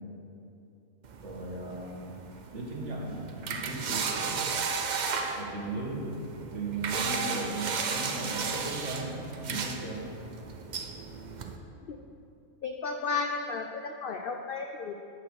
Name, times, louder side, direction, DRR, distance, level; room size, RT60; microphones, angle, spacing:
sound 1, 1.0-11.6, right 5 dB, 90° right, 0.4 m, -35 dB
voice 1, 1.2-2.0 2.5-4.6 5.4-6.2 6.5-10.0, right 2 dB, 55° right, -2 dB, 1.7 m, -36 dB
voice 2, 12.6-14.9, left 4 dB, 85° left, 4 dB, 0.5 m, -33 dB
9.7 x 4.9 x 6.5 m, 2.6 s
omnidirectional pair, 1.5 m